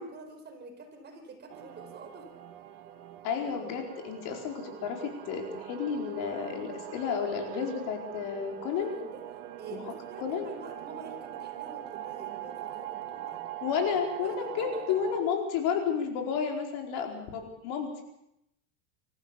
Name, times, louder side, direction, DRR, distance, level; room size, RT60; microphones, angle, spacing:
voice 1, 0.0-2.3 8.8-9.2 9.6-13.4 13.7-13.8 14.2-14.8, right 4 dB, 25° right, 4 dB, 4.6 m, -47 dB
sound 1, 1.5-15.2, right 12 dB, 75° right, 2.3 m, -42 dB
voice 2, 3.2-8.9 9.7-9.8 10.2-10.5 13.6-18.0, left 7 dB, 60° left, 3 dB, 4.7 m, -31 dB
25.5 x 14.5 x 7.1 m, 0.81 s
supercardioid pair, 135°, 37 cm